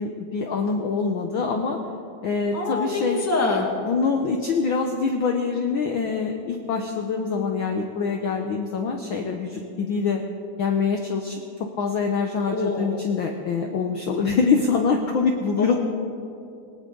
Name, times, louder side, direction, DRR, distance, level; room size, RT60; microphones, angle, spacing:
voice 1, 0.0-1.8 2.2-3.3 3.8-10.2 10.6-11.4 11.8-15.8, left 5 dB, 75° left, 4 dB, 1.1 m, -24 dB
voice 2, 2.5-3.7 12.6-12.9 15.7-15.8, left 2 dB, 10° left, 0 dB, 1.1 m, -25 dB
19.0 x 19.0 x 3.9 m, 2.7 s
omnidirectional pair, 3.3 m